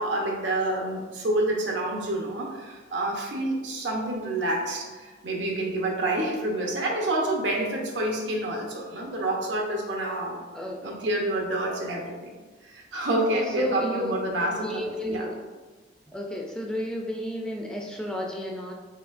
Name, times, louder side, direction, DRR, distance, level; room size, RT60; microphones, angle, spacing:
voice 1, 0.0-10.4 10.8-12.3 12.6-15.3, right 1 dB, 90° right, -1 dB, 0.9 m, -28 dB
voice 2, 10.5-10.9 13.6-14.1 14.6-15.4 16.1-18.7, equal, 5° left, -1 dB, 0.4 m, -32 dB
4.6 x 3.8 x 2.5 m, 1.3 s
head